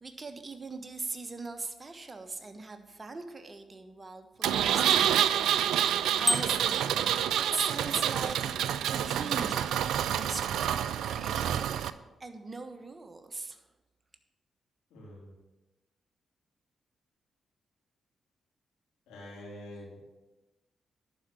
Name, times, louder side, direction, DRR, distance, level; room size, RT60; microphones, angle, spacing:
voice 1, 0.0-6.9 7.5-8.4 8.8-9.8 10.1-10.8 11.0-11.9 12.2-13.6, right 3 dB, 35° right, 7 dB, 1.3 m, -40 dB
Engine, 4.4-11.9, right 10 dB, 75° right, 0.4 m, -28 dB
Bicycle bell, 6.2-6.9, left 1 dB, 20° left, 0.5 m, -29 dB
voice 2, 14.9-15.3 19.1-20.0, left 1 dB, 80° left, -4 dB, 3.3 m, -46 dB
11.5 x 4.7 x 7.7 m, 1.1 s
hypercardioid pair, 40°, 0 cm